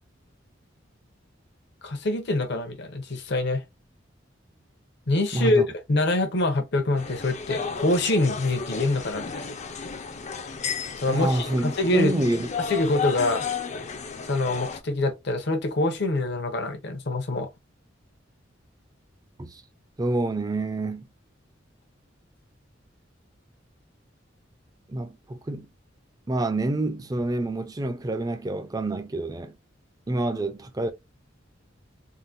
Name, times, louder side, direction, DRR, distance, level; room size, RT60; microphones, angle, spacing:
voice 1, 1.8-3.6 5.1-9.5 11.0-12.1 12.7-13.5 14.2-17.5, left 2 dB, 60° left, 0.8 m, -25 dB
voice 2, 5.3-5.7 11.1-12.5 19.4-19.6 20.0-21.1 24.9-25.7 26.3-29.5 30.1-30.9, right 2 dB, 20° right, 0.5 m, -27 dB
sound 1, 7.0-14.8, left 5 dB, 35° left, 0.5 m, -33 dB
3.7 x 2.2 x 2.6 m
head